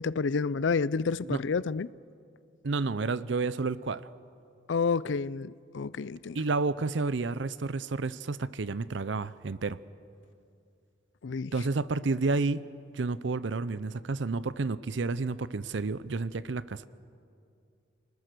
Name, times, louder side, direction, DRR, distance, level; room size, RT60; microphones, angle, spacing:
voice 1, 0.0-1.9 4.7-6.4 11.2-11.5, left 5 dB, 70° left, 0.5 m, -29 dB
voice 2, 2.6-4.1 6.3-9.8 11.5-12.6 12.9-16.9, right 3 dB, 65° right, 0.6 m, -30 dB
29.5 x 20.0 x 6.7 m
head